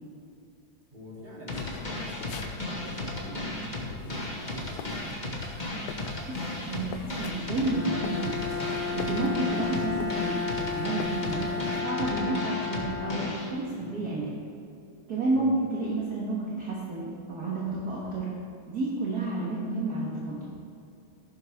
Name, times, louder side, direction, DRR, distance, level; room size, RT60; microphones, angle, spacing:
voice 1, 0.9-4.9 9.4-9.7 13.7-14.0 15.3-15.5, left 1 dB, 20° right, -6 dB, 3.3 m, -44 dB
sound 1, 1.5-11.8, left 9 dB, 80° left, 1.4 m, -44 dB
sound 2, 1.5-13.5, left 1 dB, 25° left, 1.8 m, -35 dB
voice 2, 6.0-8.5 8.9-14.3 15.1-18.3 18.7-20.6, right 2 dB, 50° right, -5 dB, 2.1 m, -31 dB
Bowed string instrument, 7.5-13.7, left 5 dB, 55° left, 3.8 m, -33 dB
14.5 x 12.0 x 3.6 m, 2.5 s
omnidirectional pair, 2.2 m